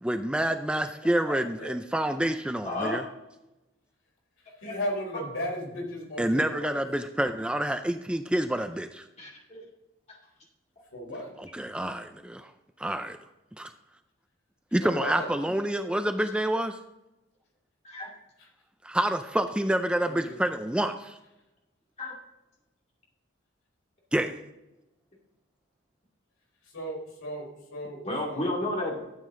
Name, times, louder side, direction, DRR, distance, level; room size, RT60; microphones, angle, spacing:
voice 1, 0.0-3.0 6.2-9.0 11.4-12.5 12.8-13.2 13.6-13.7 14.7-16.8 18.8-21.2 24.1-24.4, right 1 dB, 5° right, 8 dB, 0.3 m, -28 dB
voice 2, 1.4-1.7 2.6-3.0 4.6-4.8 5.1-5.2 9.2-9.6 10.1-10.2 17.8-18.1 22.0-22.1 28.0-29.0, left 1 dB, 30° left, -3 dB, 2.3 m, -32 dB
voice 3, 4.6-6.8 10.9-11.3 14.8-15.3 18.4-18.5 19.9-20.4 26.7-28.5, equal, 90° left, -1 dB, 4.0 m, -35 dB
12.5 x 7.4 x 3.8 m, 0.97 s
head